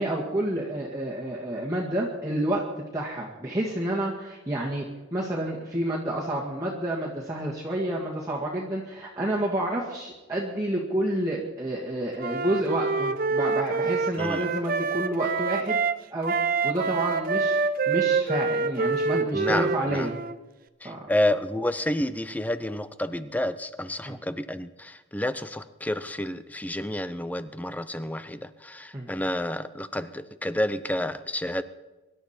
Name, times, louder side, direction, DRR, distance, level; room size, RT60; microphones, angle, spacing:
voice 1, 0.0-2.6 2.9-15.8 16.1-17.6 17.9-20.2 20.8-21.0 24.0-24.2 28.9-29.1, right 1 dB, 15° right, -5 dB, 1.9 m, -29 dB
Wind instrument woodwind instrument, 12.2-16.0 16.2-20.4, right 4 dB, 45° right, 0.7 m, -26 dB
voice 2, 14.2-14.5 19.3-20.1 20.8-31.6, left 1 dB, 10° left, 12 dB, 0.6 m, -30 dB
24.5 x 12.0 x 4.4 m, 1.1 s
head